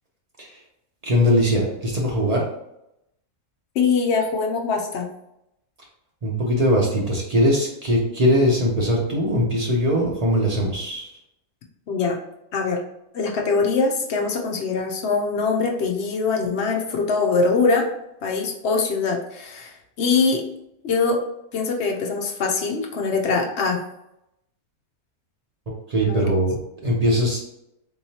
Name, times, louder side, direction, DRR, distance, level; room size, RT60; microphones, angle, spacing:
voice 1, 1.0-2.4 6.2-11.1 25.9-27.5, equal, 60° right, -2 dB, 0.4 m, -21 dB
voice 2, 3.7-5.1 11.9-12.1 12.5-12.8 13.1-17.9 18.2-20.4 20.8-21.2 21.5-23.8 26.0-26.4, left 4 dB, 60° left, 1 dB, 0.7 m, -23 dB
3.7 x 3.1 x 2.8 m, 0.83 s
omnidirectional pair, 1.7 m